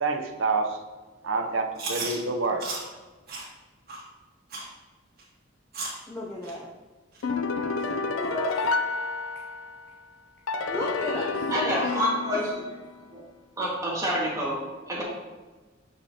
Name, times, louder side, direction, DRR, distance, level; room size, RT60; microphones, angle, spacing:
voice 1, 0.0-0.8 1.2-2.6, right 3 dB, 75° right, 4 dB, 0.7 m, -27 dB
Chewing mastication, 1.7-2.1 2.6-2.8 3.3-3.4 3.9-4.0 4.5-4.7 5.2-5.3 5.7-6.0 6.4-6.5 7.1-7.2 7.8-7.9 8.5-8.6, right 3 dB, 50° right, 1.8 m, -34 dB
voice 2, 6.1-6.7 7.9-8.6 10.6-12.0, equal, 10° left, -3 dB, 0.6 m, -34 dB
sound 1, 7.2-9.8 10.5-12.9, left 4 dB, 85° left, 0.4 m, -29 dB
voice 3, 11.5-12.5 13.1-13.2 13.6-14.5 14.9-15.0, equal, 15° right, -5 dB, 1.8 m, -27 dB
6.6 x 5.3 x 2.8 m, 1.3 s
head